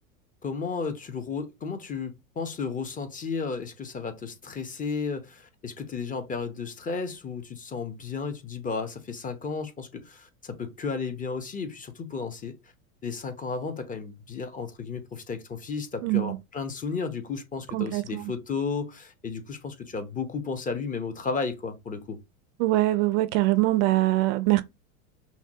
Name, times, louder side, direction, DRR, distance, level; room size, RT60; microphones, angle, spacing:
voice 1, 0.4-12.6 13.0-22.2, left 5 dB, 20° left, 0.8 m, -33 dB
voice 2, 16.0-16.4 17.7-18.2 22.6-24.6, right 17 dB, 50° right, 0.5 m, -23 dB
5.6 x 2.3 x 2.8 m
supercardioid pair, 115°, 42 cm